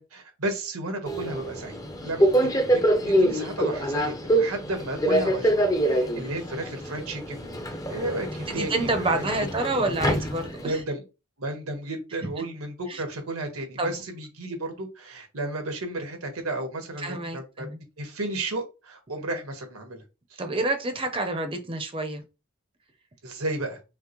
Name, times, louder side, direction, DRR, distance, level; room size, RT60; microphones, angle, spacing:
voice 1, 0.0-2.3 2.7-7.6 7.9-9.9 10.6-11.0 11.4-17.7 18.0-20.0 20.3-20.4 23.2-23.8, right 2 dB, 85° right, 1.4 m, -33 dB
Subway metro underground, 1.1-10.8, right 1 dB, 15° left, 0.5 m, -25 dB
voice 2, 8.5-10.8 12.9-13.0 13.8-13.9 17.0-17.8 20.4-22.2, right 2 dB, 25° right, 0.6 m, -28 dB
5.7 x 2.1 x 3.0 m
head